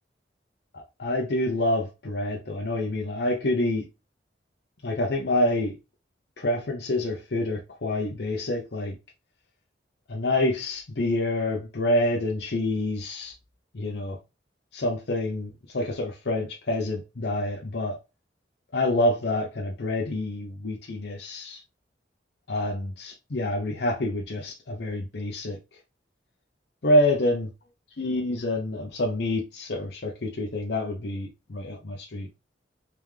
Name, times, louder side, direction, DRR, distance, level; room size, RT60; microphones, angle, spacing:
voice 1, 1.0-3.8 4.8-5.8 6.4-9.0 10.1-13.3 13.7-14.2 14.7-18.0 18.7-21.6 22.5-25.6 26.8-27.5 28.0-32.3, left 1 dB, 65° left, 0.6 m, -27 dB
3.4 x 3.2 x 3.4 m
head